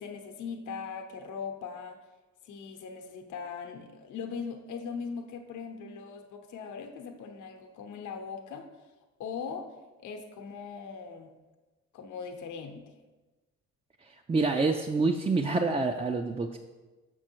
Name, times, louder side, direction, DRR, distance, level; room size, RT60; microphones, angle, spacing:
voice 1, 0.0-2.0 2.4-8.7 9.2-9.7 10.0-11.3 11.9-12.9, left 6 dB, 75° left, 4 dB, 0.8 m, -40 dB
voice 2, 14.0-16.6, right 3 dB, 20° right, 3 dB, 0.4 m, -27 dB
6.2 x 6.1 x 4.5 m, 1.2 s
cardioid pair, 90°, 30 cm